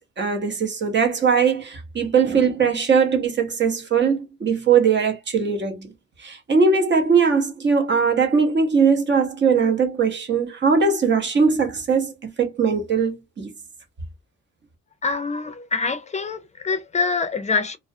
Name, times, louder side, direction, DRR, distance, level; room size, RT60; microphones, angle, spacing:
voice 1, 0.2-5.9 6.2-13.5, right 5 dB, 35° right, 0.8 m, -20 dB
voice 2, 15.0-17.8, left 4 dB, 25° left, 0.5 m, -25 dB
2.3 x 2.1 x 2.6 m
cardioid pair, 90°, 30 cm